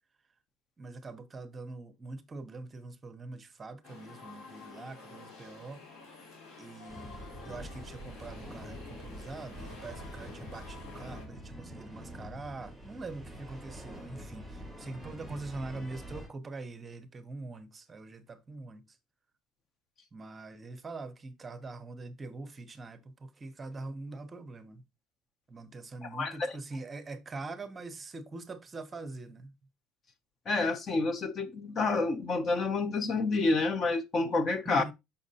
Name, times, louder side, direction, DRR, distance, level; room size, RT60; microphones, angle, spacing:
voice 1, 0.8-5.8 6.6-19.0 20.1-24.8 25.5-29.5 34.6-34.9, right 3 dB, 20° right, 0.7 m, -43 dB
sound 1, 3.8-11.2, left 4 dB, 60° left, 2.2 m, -50 dB
sound 2, 6.9-16.3, equal, ahead, 3.8 m, -45 dB
voice 2, 26.0-26.5 30.5-34.8, left 3 dB, 30° left, 0.5 m, -29 dB
6.3 x 5.5 x 2.7 m
cardioid pair, 150°, 0 cm